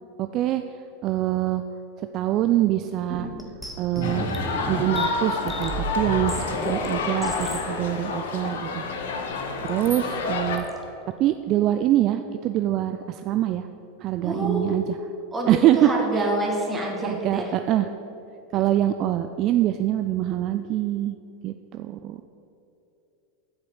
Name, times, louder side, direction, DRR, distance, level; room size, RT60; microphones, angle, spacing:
voice 1, 0.2-0.6 1.0-1.6 2.0-3.3 3.8-4.3 4.7-9.1 9.4-10.7 11.2-13.7 14.0-15.0 15.5-16.2 17.0-17.9 18.5-21.2 21.4-22.2, right 13 dB, 45° right, 9 dB, 0.4 m, -24 dB
sound 1, 3.1-7.7 8.3-8.4 9.7-10.0 10.6-10.8, right 1 dB, ahead, 1.1 m, -33 dB
sound 2, 4.0-10.6, left 4 dB, 75° left, 1.1 m, -29 dB
voice 2, 14.2-14.7 15.3-17.5 18.5-18.6, right 1 dB, 15° right, -1 dB, 2.1 m, -27 dB
8.0 x 5.6 x 7.8 m, 2.8 s
hypercardioid pair, 100°, 0 cm